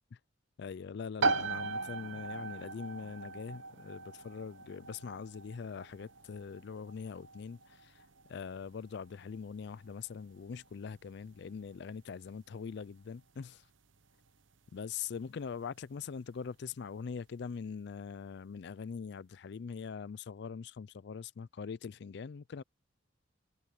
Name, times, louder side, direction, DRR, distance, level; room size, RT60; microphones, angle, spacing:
voice 1, 0.6-8.0 8.3-13.6 14.7-22.6, left 6 dB, 60° left, 0.4 m, -42 dB
sound 1, 1.2-15.7, right 3 dB, 70° right, 0.9 m, -40 dB
head